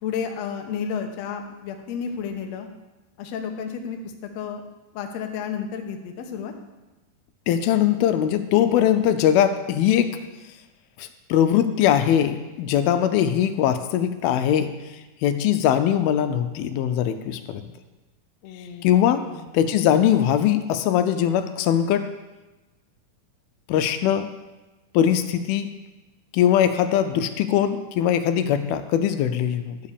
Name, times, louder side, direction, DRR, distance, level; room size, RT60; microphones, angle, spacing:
voice 1, 0.0-2.7 3.2-4.6 4.9-6.5 18.4-18.9 19.2-19.5, left 7 dB, 70° left, 4 dB, 1.7 m, -32 dB
voice 2, 7.5-10.2 11.0-14.7 15.2-17.7 18.8-19.3 19.5-22.1 23.7-24.3 24.9-25.7 26.3-29.8, left 10 dB, 85° left, 9 dB, 2.5 m, -21 dB
12.5 x 5.2 x 6.9 m, 1.1 s
omnidirectional pair, 4.3 m